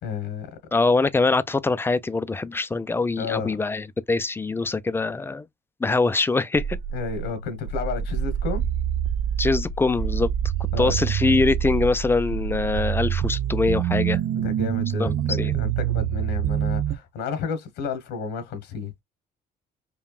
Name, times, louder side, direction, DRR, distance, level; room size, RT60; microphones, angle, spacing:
voice 1, 0.0-0.5 3.2-3.6 6.9-8.7 10.7-10.9 14.3-18.9, left 5 dB, 85° left, 1.4 m, -31 dB
voice 2, 0.7-5.4 5.8-6.8 9.4-10.3 10.8-14.2 15.0-15.1 15.4-15.5, left 3 dB, 15° left, 0.4 m, -23 dB
sound 1, 6.5-17.0, right 9 dB, 55° right, 0.5 m, -26 dB
5.3 x 2.3 x 2.3 m
cardioid pair, 110°, 17 cm